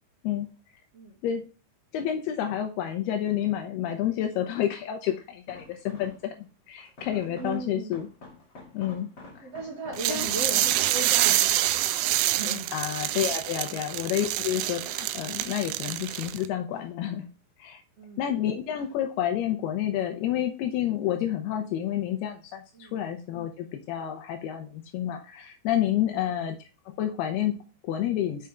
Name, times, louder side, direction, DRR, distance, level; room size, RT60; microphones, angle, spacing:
voice 1, 1.9-8.1 8.7-9.5 10.1-10.3 12.7-17.2 17.6-17.8 18.2-26.6 27.0-28.5, left 11 dB, 85° left, 5 dB, 2.3 m, -29 dB
sound 1, 3.3-3.7 4.6-6.5 6.8-11.5 12.0-12.9 13.3-14.2 14.7-16.0 16.3-17.5 17.7-18.3 18.8-19.1 19.4-19.5, left 3 dB, 35° left, 2.4 m, -50 dB
voice 2, 7.2-8.0 9.4-11.7 12.2-12.7 13.7-13.9 15.6-15.8 18.0-18.3 22.7-23.0 26.0-26.3, right 2 dB, 50° right, -3 dB, 1.9 m, -37 dB
sound 2, 10.0-16.5, right 14 dB, 85° right, 2.4 m, -26 dB
6.4 x 5.7 x 3.5 m, 0.34 s
omnidirectional pair, 5.3 m